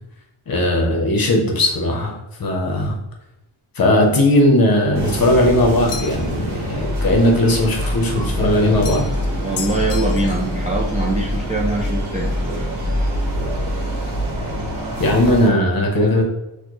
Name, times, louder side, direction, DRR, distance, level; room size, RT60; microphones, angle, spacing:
voice 1, 0.5-3.0 3.7-9.1 15.0-16.2, left 1 dB, 45° left, 0 dB, 0.8 m, -17 dB
sound 1, 4.9-15.5, equal, 50° right, 1.1 m, -24 dB
sound 2, 5.9-6.4 8.8-9.2 9.6-10.5, left 6 dB, 85° left, 0.6 m, -32 dB
voice 2, 9.4-12.3, right 2 dB, 15° right, -3 dB, 0.3 m, -23 dB
4.1 x 2.2 x 3.0 m, 0.95 s
wide cardioid pair, 140°, 49 cm